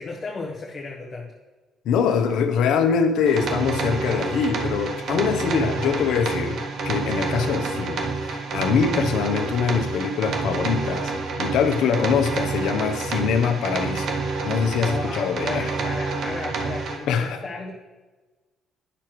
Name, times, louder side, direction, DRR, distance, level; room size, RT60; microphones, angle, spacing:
voice 1, 0.0-1.3 14.8-17.7, left 3 dB, 35° left, -1 dB, 0.9 m, -34 dB
voice 2, 1.8-11.1 11.4-15.7 17.1-17.4, left 6 dB, 75° left, 7 dB, 0.7 m, -23 dB
sound 1, 3.3-17.0, right 4 dB, 65° right, 1.2 m, -28 dB
10.0 x 5.9 x 3.1 m, 1.3 s
cardioid pair, 80°, 0 cm